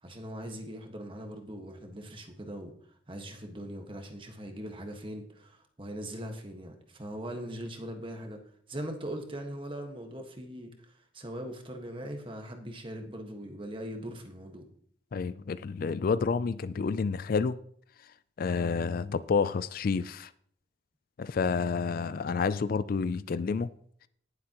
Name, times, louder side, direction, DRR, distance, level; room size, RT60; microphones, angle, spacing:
voice 1, 0.0-8.4 8.7-14.7, equal, 30° right, 1.5 m, -41 dB
voice 2, 15.1-17.6 18.4-20.3 21.2-23.7, left 5 dB, 50° left, 0.4 m, -29 dB
18.0 x 7.5 x 3.0 m
head